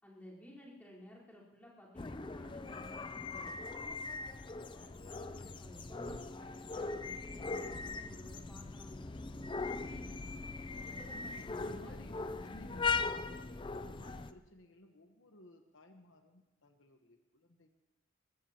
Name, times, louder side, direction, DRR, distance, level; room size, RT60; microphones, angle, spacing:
voice 1, 0.0-3.6 4.7-10.2 10.8-11.3 11.7-12.0, equal, 10° left, -6 dB, 4.2 m, -55 dB
sound 1, 2.0-14.3, left 4 dB, 25° left, 0.4 m, -40 dB
voice 2, 11.1-12.9 13.2-17.7, left 1 dB, 75° left, 5 dB, 1.1 m, -57 dB
22.5 x 19.5 x 2.9 m, 1.1 s
head